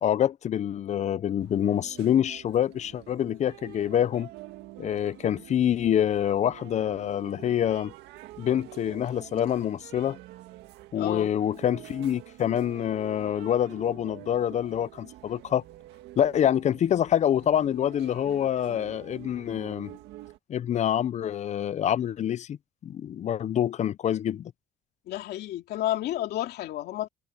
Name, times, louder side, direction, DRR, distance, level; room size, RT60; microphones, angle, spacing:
voice 1, 0.0-4.3 4.8-7.9 8.4-10.2 10.9-15.6 16.2-19.9 20.5-22.6 22.8-24.5, left 10 dB, 45° left, 0.5 m, -26 dB
sound 1, 1.4-20.4, right 16 dB, 90° right, 2.0 m, -47 dB
voice 2, 11.0-11.3 25.1-27.1, left 13 dB, 75° left, 2.5 m, -31 dB
cardioid pair, 110°, 17 cm